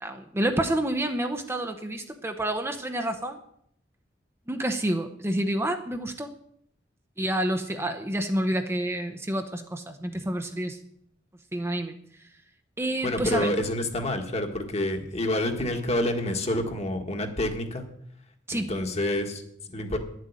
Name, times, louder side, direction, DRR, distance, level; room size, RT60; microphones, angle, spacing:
voice 1, 0.0-3.4 4.5-6.3 7.2-10.8 11.5-11.9 12.8-13.5 18.5-18.7, right 1 dB, 15° right, 6 dB, 0.8 m, -28 dB
voice 2, 13.0-17.9 18.5-20.0, left 1 dB, 35° left, 4 dB, 1.7 m, -28 dB
10.5 x 7.6 x 9.6 m, 0.72 s
head